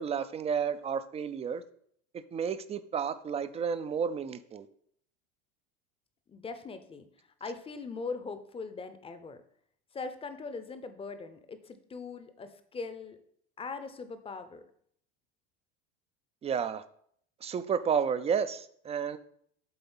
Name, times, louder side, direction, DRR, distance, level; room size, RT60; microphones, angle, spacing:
voice 1, 0.0-1.6 2.1-4.7 16.4-16.8 17.4-19.2, right 7 dB, 20° right, 13 dB, 0.4 m, -31 dB
voice 2, 6.3-7.1 7.4-9.4 9.9-13.2 13.6-14.6, left 4 dB, 20° left, 10 dB, 0.7 m, -40 dB
8.0 x 3.8 x 5.5 m, 0.66 s
supercardioid pair, 110°, 30 cm